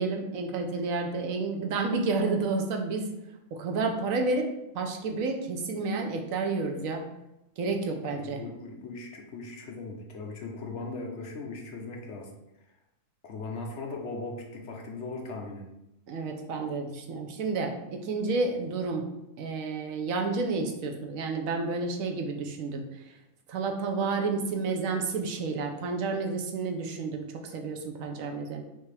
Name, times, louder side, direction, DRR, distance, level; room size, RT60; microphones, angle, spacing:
voice 1, 0.0-3.1 3.5-7.0 7.6-8.4 16.1-19.1 19.4-22.8 23.5-28.6, right 3 dB, 85° right, 3 dB, 1.1 m, -30 dB
voice 2, 8.0-12.3 13.2-15.7, left 3 dB, 60° left, 1 dB, 1.0 m, -39 dB
5.6 x 2.8 x 3.3 m, 0.89 s
omnidirectional pair, 1.4 m